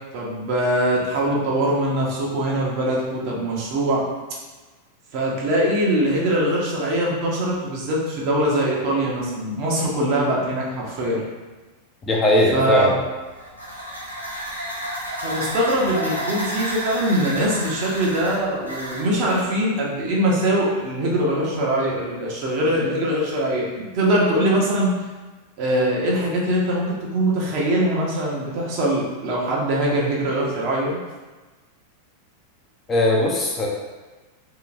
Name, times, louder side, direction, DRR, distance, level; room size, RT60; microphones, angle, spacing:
voice 1, 0.1-4.0 5.1-11.2 12.5-12.9 15.2-25.0 25.6-31.0, right 1 dB, 45° right, -4 dB, 0.8 m, -22 dB
voice 2, 12.0-13.0 32.9-33.7, left 1 dB, 20° left, -2 dB, 0.5 m, -19 dB
sound 1, 13.2-19.4, equal, 85° right, 0.6 m, -31 dB
2.9 x 2.9 x 2.5 m, 1.2 s
figure-of-eight pair, 90°, 0 cm